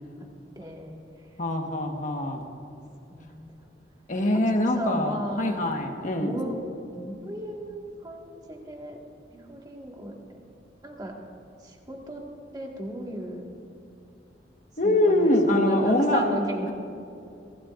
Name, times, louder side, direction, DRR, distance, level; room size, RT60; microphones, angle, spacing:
voice 1, 0.6-1.0 1.9-2.3 3.1-3.4 4.8-5.6 6.2-6.6 7.0-9.0 9.3-10.4 10.8-11.2 11.6-12.2 12.5-13.5 14.8-16.7, right 1 dB, 20° right, 0 dB, 1.7 m, -35 dB
voice 2, 1.4-2.5 4.1-6.3 14.8-16.2, left 1 dB, 45° left, 3 dB, 1.4 m, -24 dB
23.5 x 15.5 x 2.5 m, 2.6 s
head